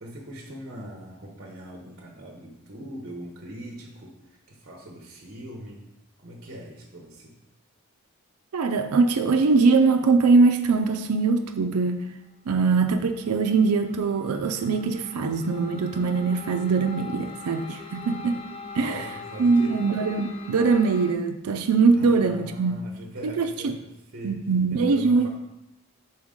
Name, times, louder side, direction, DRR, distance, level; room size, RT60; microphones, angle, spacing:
voice 1, 0.0-5.8 6.2-7.4 18.7-19.8 21.9-24.4 24.7-25.3, equal, 45° right, 0 dB, 0.8 m, -41 dB
voice 2, 8.5-12.0 12.5-18.4 18.7-19.0 19.4-22.8 23.2-23.8 24.2-25.3, right 4 dB, 85° right, 6 dB, 0.4 m, -22 dB
sound 1, 12.6-21.1, left 4 dB, 25° left, 0.4 m, -42 dB
6.2 x 4.4 x 3.6 m, 0.89 s
head